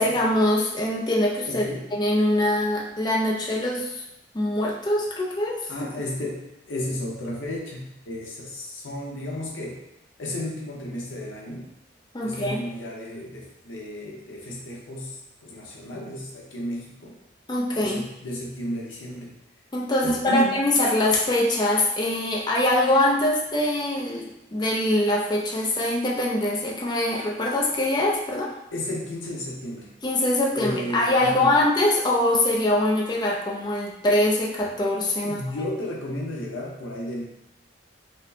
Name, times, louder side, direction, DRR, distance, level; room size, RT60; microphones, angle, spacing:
voice 1, 0.0-1.6 1.9-4.0 4.3-5.7 12.1-12.6 17.5-18.0 19.7-28.5 30.0-35.4, left 1 dB, 20° left, -2 dB, 0.5 m, -23 dB
voice 2, 1.5-1.9 5.7-9.8 10.2-11.7 12.2-17.2 17.7-19.4 20.0-20.5 28.7-29.9 30.5-31.6 35.2-37.5, left 1 dB, 85° left, -2 dB, 0.8 m, -33 dB
4.2 x 2.1 x 2.7 m, 0.86 s
head